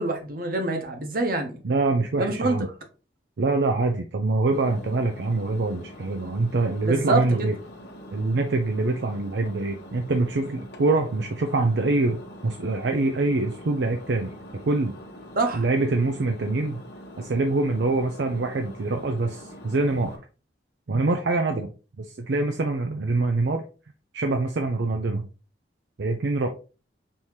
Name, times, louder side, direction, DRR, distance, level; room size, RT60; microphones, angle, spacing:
voice 1, 0.0-1.6 2.2-2.6 6.8-7.5 15.4-15.6, right 2 dB, 55° right, 1.0 m, -25 dB
voice 2, 1.6-2.7 3.4-7.5 8.1-14.3 14.6-15.0 15.5-16.8 17.2-20.2 20.9-23.6 24.1-25.3 26.0-26.5, right 3 dB, 75° right, 0.5 m, -25 dB
Engine, 4.5-20.2, equal, 65° left, 1.0 m, -44 dB
5.4 x 2.8 x 3.1 m
head